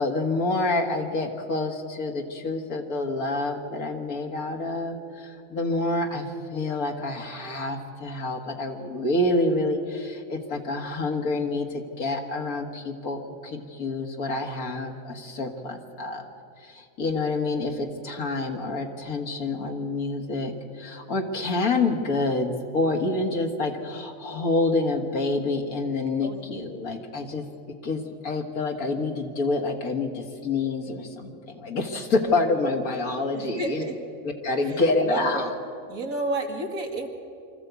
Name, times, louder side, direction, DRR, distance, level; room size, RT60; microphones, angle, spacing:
voice 1, 0.0-16.3 16.6-27.5 27.8-33.8 34.4-35.5, left 2 dB, 80° left, 3 dB, 2.1 m, -27 dB
voice 2, 26.2-26.8 32.1-32.4 33.3-34.0 34.6-35.4 35.9-37.1, right 2 dB, 75° right, 2 dB, 2.3 m, -32 dB
24.0 x 14.0 x 8.2 m, 2.6 s
omnidirectional pair, 1.5 m